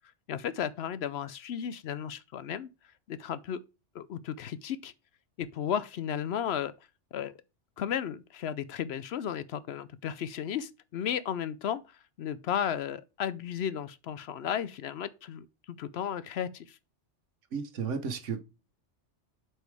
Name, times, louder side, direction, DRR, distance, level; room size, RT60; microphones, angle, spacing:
voice 1, 0.3-2.7 3.1-3.6 3.9-4.9 5.4-6.7 7.1-7.4 7.8-11.8 12.2-16.8, left 9 dB, 65° left, 0.8 m, -34 dB
voice 2, 17.5-18.4, right 6 dB, 85° right, 1.4 m, -33 dB
8.1 x 4.5 x 3.3 m
omnidirectional pair, 1.2 m